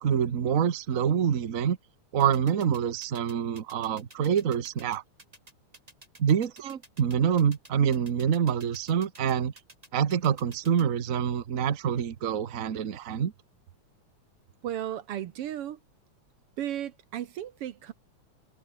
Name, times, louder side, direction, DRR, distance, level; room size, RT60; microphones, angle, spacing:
voice 1, 0.0-1.8 2.1-5.0 6.2-9.5 9.9-13.3, right 8 dB, 90° right, 0.7 m, -26 dB
sound 1, 2.2-10.8, right 1 dB, 10° right, 3.5 m, -51 dB
voice 2, 14.6-15.8 16.6-17.9, right 11 dB, 65° right, 1.6 m, -34 dB
omnidirectional pair, 3.5 m